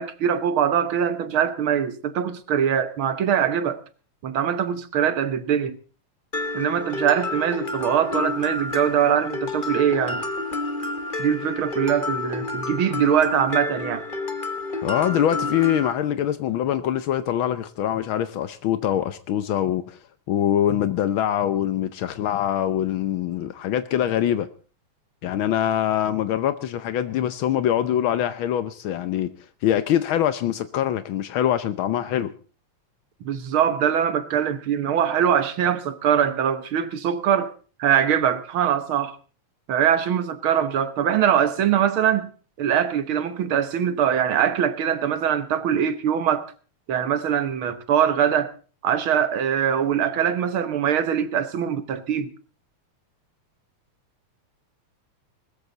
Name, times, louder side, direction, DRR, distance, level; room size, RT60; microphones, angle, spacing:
voice 1, 0.0-3.8 4.2-5.8 6.5-10.2 11.2-14.0 33.2-37.5 37.8-39.1 39.7-42.3 42.6-46.5 46.9-48.5 48.8-52.3, right 8 dB, 55° right, 1.6 m, -22 dB
Mallet percussion, 6.3-15.9, left 3 dB, 55° left, 0.5 m, -29 dB
voice 2, 14.8-20.0 20.3-24.5 25.2-29.3 29.6-32.3, left 10 dB, 80° left, 1.1 m, -24 dB
20.0 x 14.0 x 4.0 m
omnidirectional pair, 3.4 m